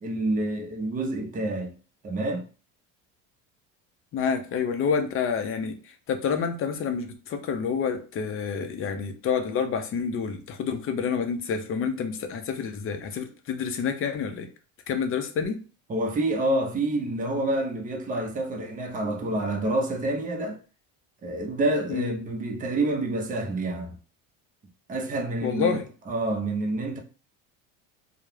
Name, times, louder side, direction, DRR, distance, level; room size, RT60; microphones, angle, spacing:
voice 1, 0.0-1.7 2.0-2.5 15.9-20.6 21.2-24.0 24.9-25.8 26.1-27.0, right 2 dB, 20° right, 0.6 m, -28 dB
voice 2, 4.1-14.5 14.9-15.6 21.9-22.1 25.4-25.8, left 6 dB, 35° left, 0.5 m, -28 dB
2.2 x 2.0 x 3.1 m
supercardioid pair, 105°, 37 cm